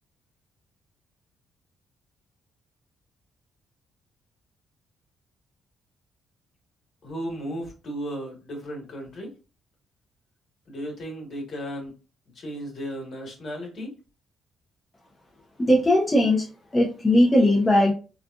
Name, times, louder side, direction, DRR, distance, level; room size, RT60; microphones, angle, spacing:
voice 1, 7.0-9.3 10.7-11.9 12.3-13.9, equal, 55° left, 0 dB, 1.6 m, -35 dB
voice 2, 15.6-16.5 16.7-17.9, left 1 dB, 20° left, -2 dB, 0.8 m, -19 dB
3.3 x 2.4 x 2.4 m, 0.34 s
cardioid pair, 90°, 0 cm